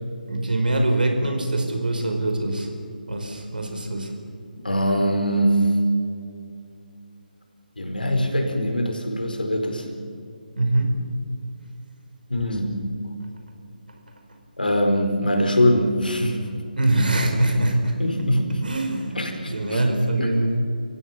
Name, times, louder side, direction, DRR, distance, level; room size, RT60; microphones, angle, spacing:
voice 1, 0.3-2.7 3.1-4.1 10.6-10.9 16.8-17.9 18.6-20.5, right 1 dB, 70° right, 4 dB, 4.9 m, -23 dB
voice 2, 4.6-5.7 7.8-9.9 12.3-12.8 14.6-16.5 18.0-18.6 19.1-19.8 20.2-20.3, equal, 75° left, 3 dB, 4.8 m, -22 dB
29.5 x 16.0 x 7.5 m, 2.5 s
figure-of-eight pair, 150°, 5 cm